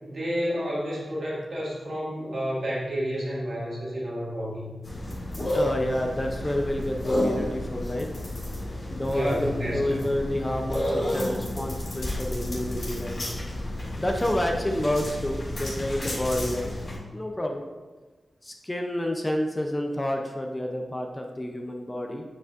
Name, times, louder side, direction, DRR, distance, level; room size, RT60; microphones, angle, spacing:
voice 1, 0.0-4.6 9.1-10.1, equal, 60° right, -6 dB, 1.8 m, -30 dB
sound 1, 4.8-16.9, left 1 dB, 35° left, 2.0 m, -31 dB
voice 2, 5.5-8.1 8.9-13.5 14.0-16.7 17.1-17.6 18.4-22.2, left 1 dB, 15° left, 2 dB, 0.5 m, -29 dB
8.2 x 5.1 x 2.4 m, 1.3 s
wide cardioid pair, 160°, 0 cm